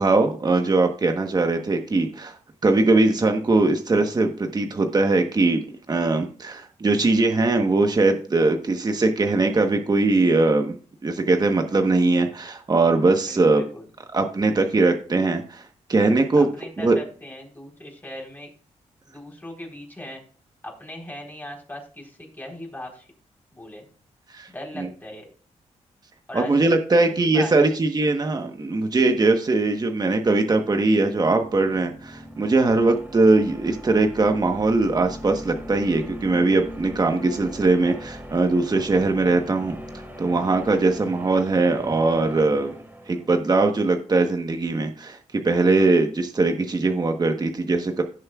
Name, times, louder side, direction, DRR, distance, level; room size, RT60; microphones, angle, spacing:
voice 1, 0.0-2.3 2.6-5.6 5.9-10.7 11.0-13.6 14.1-16.5 16.8-17.0 24.3-24.5 24.8-24.9 26.3-39.8 40.2-42.7 43.1-45.2 45.4-48.0, right 3 dB, 35° right, 5 dB, 1.2 m, -21 dB
voice 2, 13.3-13.9 16.4-18.5 19.0-20.2 20.6-23.1 23.5-23.8 24.5-25.3 26.3-27.8, left 1 dB, 15° left, 0 dB, 4.0 m, -38 dB
sound 1, 30.8-43.6, equal, 15° right, 2.6 m, -40 dB
16.5 x 6.3 x 2.4 m, 0.42 s
cardioid pair, 70°, 12 cm